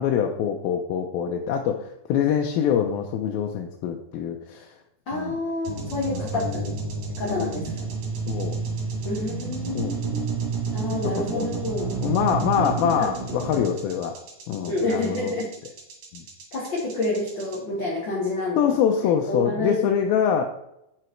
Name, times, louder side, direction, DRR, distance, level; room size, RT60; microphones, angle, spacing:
voice 1, 0.0-4.7 5.1-5.3 6.1-6.7 7.3-7.6 8.3-8.5 9.7-9.9 11.0-11.6 12.0-14.1 14.5-15.3 16.1-16.2 18.6-20.4, left 8 dB, 85° left, 3 dB, 2.5 m, -25 dB
voice 2, 5.1-6.6 7.2-7.7 9.0-10.4 10.7-13.4 14.7-15.5 16.5-18.8 19.3-19.9, left 2 dB, 45° left, -4 dB, 1.5 m, -29 dB
sound 1, 5.7-17.6, right 5 dB, 55° right, 2.9 m, -31 dB
7.7 x 6.1 x 4.5 m, 0.82 s
omnidirectional pair, 4.2 m